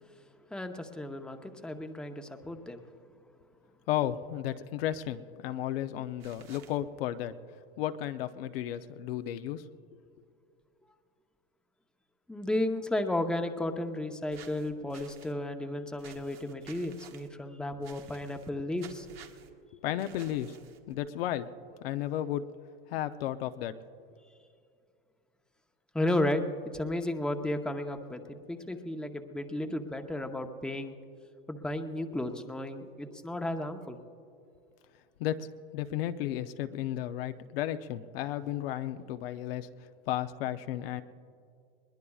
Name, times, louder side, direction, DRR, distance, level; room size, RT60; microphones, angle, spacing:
voice 1, 0.5-2.8 12.3-19.1 25.9-26.4 26.7-30.9 31.5-34.0, left 1 dB, 5° left, 5 dB, 0.8 m, -33 dB
voice 2, 3.9-7.4 7.8-9.6 19.8-20.6 20.9-21.5 21.8-22.4 22.9-23.7 35.2-35.5 35.7-41.0, left 12 dB, 75° left, 9 dB, 0.7 m, -33 dB
sound 1, 6.2-6.8 14.3-15.3 16.0-17.3 17.8-18.5 18.8-19.5 20.0-20.9, right 8 dB, 85° right, 1.5 m, -53 dB
21.0 x 20.5 x 2.4 m, 2.4 s
supercardioid pair, 120°, 30 cm